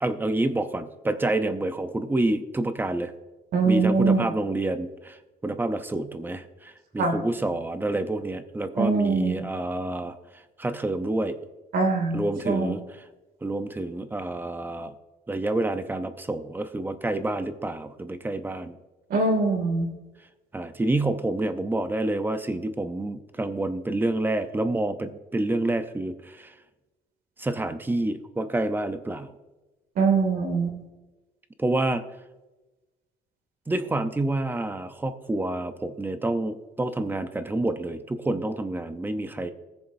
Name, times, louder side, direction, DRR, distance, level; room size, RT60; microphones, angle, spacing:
voice 1, 0.0-3.1 3.6-5.2 5.4-10.2 10.6-11.4 12.1-12.8 13.4-14.9 15.3-18.8 20.5-26.5 27.4-29.3 31.6-32.0 33.7-39.5, right 2 dB, 10° right, 10 dB, 0.6 m, -28 dB
voice 2, 3.5-4.2 7.0-7.2 8.7-9.4 11.7-12.8 19.1-19.9 30.0-30.8, right 4 dB, 60° right, 4 dB, 2.4 m, -23 dB
19.5 x 7.1 x 2.6 m, 1.1 s
cardioid pair, 140°, 17 cm